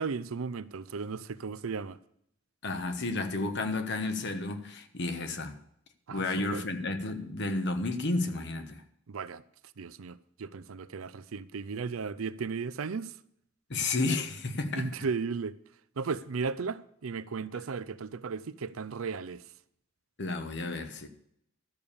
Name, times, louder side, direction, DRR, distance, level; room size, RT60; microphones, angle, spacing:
voice 1, 0.0-2.0 6.1-6.2 6.5-6.6 9.1-9.4 9.8-13.2 14.7-15.6 16.0-19.4, right 5 dB, 85° right, 0.5 m, -35 dB
voice 2, 2.6-5.6 6.1-8.8 13.7-14.9 20.2-21.1, left 2 dB, 60° left, 1.2 m, -32 dB
12.5 x 6.8 x 7.0 m
head